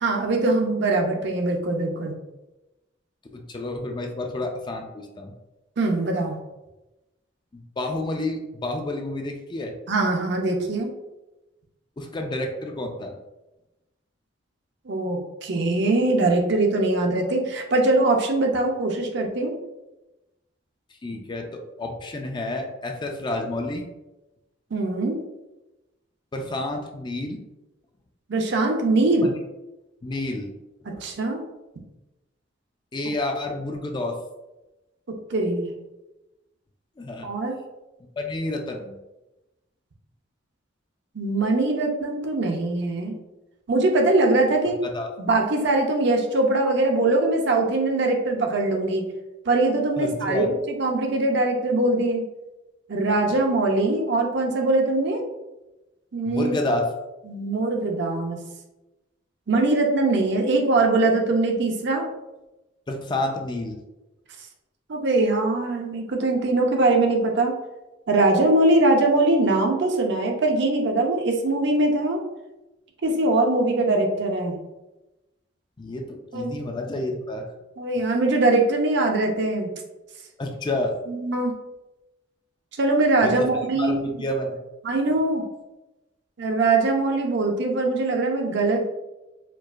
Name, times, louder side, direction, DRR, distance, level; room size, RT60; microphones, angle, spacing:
voice 1, 0.0-2.1 5.8-6.3 9.9-10.9 14.9-19.5 24.7-25.2 28.3-29.3 31.0-31.4 35.3-35.7 37.2-37.6 41.1-43.2 43.7-44.8 45.2-49.0 49.5-50.5 50.8-52.2 52.9-55.2 56.1-56.5 57.3-58.4 59.5-62.1 64.9-67.5 68.1-72.2 73.0-74.6 76.3-76.6 77.8-79.7 81.1-81.5 82.8-84.1 84.8-85.4 86.4-88.9, right 2 dB, 60° right, 2 dB, 0.6 m, -22 dB
voice 2, 3.3-5.3 7.5-9.7 12.0-13.1 21.0-23.8 26.3-27.4 29.2-29.3 30.0-30.5 32.9-34.2 37.0-37.3 38.2-39.0 44.8-45.1 50.0-50.6 56.3-56.9 62.9-63.8 75.8-77.4 80.4-81.0 83.2-83.5 83.8-84.6, left 2 dB, 25° left, 3 dB, 0.4 m, -29 dB
4.5 x 2.4 x 2.4 m, 1.0 s
head